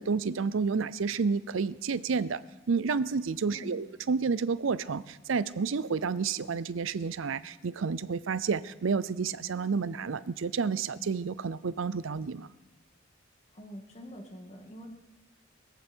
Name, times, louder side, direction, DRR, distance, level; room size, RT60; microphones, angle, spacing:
voice 1, 0.0-2.4 2.7-12.5, right 5 dB, 75° right, 17 dB, 0.5 m, -30 dB
voice 2, 3.5-3.9 13.5-14.9, equal, 35° left, 3 dB, 2.3 m, -45 dB
21.0 x 15.0 x 4.5 m, 1.1 s
head